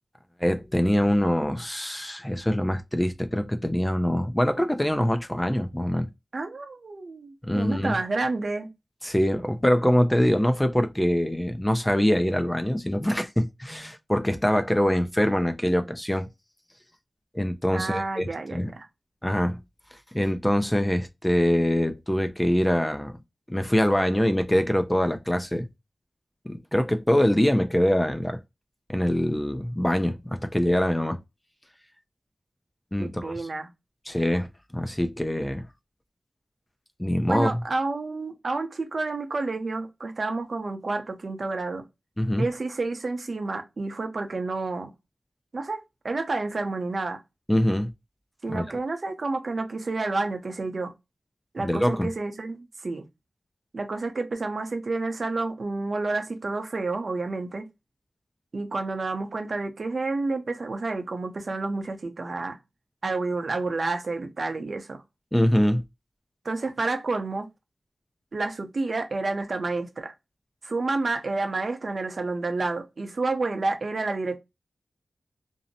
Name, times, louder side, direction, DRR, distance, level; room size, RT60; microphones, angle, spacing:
voice 1, 0.4-6.1 7.4-8.0 9.0-16.3 17.3-18.7 19.2-19.6 20.1-23.1 23.5-25.7 26.5-28.4 28.9-31.2 32.9-33.5 34.1-34.5 34.7-35.6 37.0-37.6 42.2-42.5 47.5-47.9 48.5-48.6 51.6-52.1 65.3-65.8, equal, 10° left, 0.4 m, -24 dB
voice 2, 6.3-8.7 17.7-18.9 33.0-33.7 37.3-41.9 42.4-44.9 45.5-47.2 48.4-50.9 51.5-53.0 53.7-57.7 58.5-62.6 63.0-65.0 66.4-67.5 68.3-70.1 70.6-74.4, right 3 dB, 60° right, 0.6 m, -29 dB
2.6 x 2.0 x 2.6 m
wide cardioid pair, 80°, 0 cm